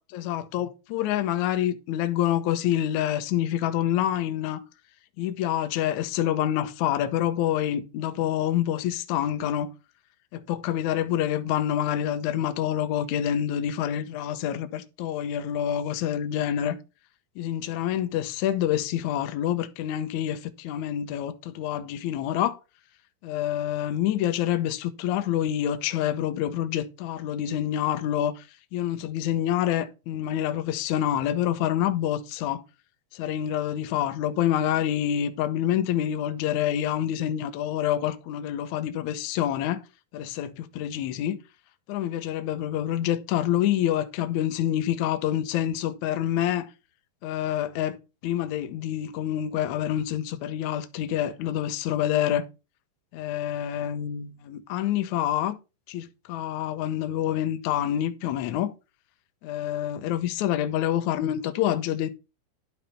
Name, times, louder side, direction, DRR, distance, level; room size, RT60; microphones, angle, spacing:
voice 1, 0.1-4.6 5.2-9.7 10.3-16.8 17.4-22.6 23.2-28.5 28.7-32.6 33.1-39.8 40.1-41.4 41.9-46.7 47.2-52.5 53.1-55.6 55.9-58.7 59.4-62.1, left 11 dB, 90° left, 1.6 m, -27 dB
11.5 x 4.4 x 5.2 m
omnidirectional pair, 4.7 m